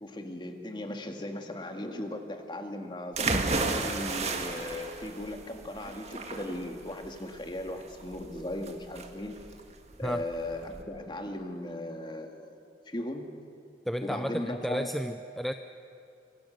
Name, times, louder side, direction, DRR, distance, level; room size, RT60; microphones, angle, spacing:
voice 1, 0.0-9.4 10.0-12.5 12.9-13.3 14.0-14.9, left 1 dB, 25° left, 4 dB, 2.1 m, -37 dB
sound 1, 3.1-10.8, right 3 dB, 40° right, 2.0 m, -33 dB
voice 2, 13.9-15.5, equal, ahead, 7 dB, 0.5 m, -32 dB
26.0 x 25.0 x 6.6 m, 2.7 s
head